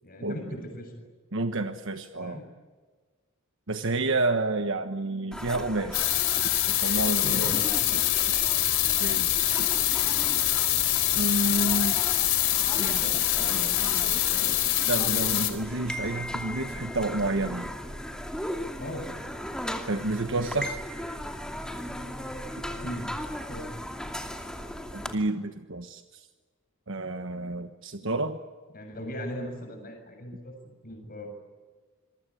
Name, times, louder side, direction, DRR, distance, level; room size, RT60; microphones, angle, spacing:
voice 1, 0.0-0.9 2.2-2.5 7.2-8.0 18.8-19.1 22.6-23.1 23.5-23.6 28.7-30.5 30.8-31.3, equal, 45° left, 4 dB, 7.2 m, -38 dB
voice 2, 1.3-2.4 3.7-6.1 6.7-7.6 9.0-9.3 9.6-9.7 11.1-12.0 12.8-17.7 19.9-20.8 24.9-26.3 26.9-28.4, right 2 dB, 65° right, 7 dB, 1.3 m, -30 dB
sound 1, 5.3-25.1, equal, 5° left, 2.6 m, -37 dB
sound 2, 5.9-15.5, left 14 dB, 75° left, 4.2 m, -25 dB
27.5 x 23.5 x 8.5 m, 1.4 s
head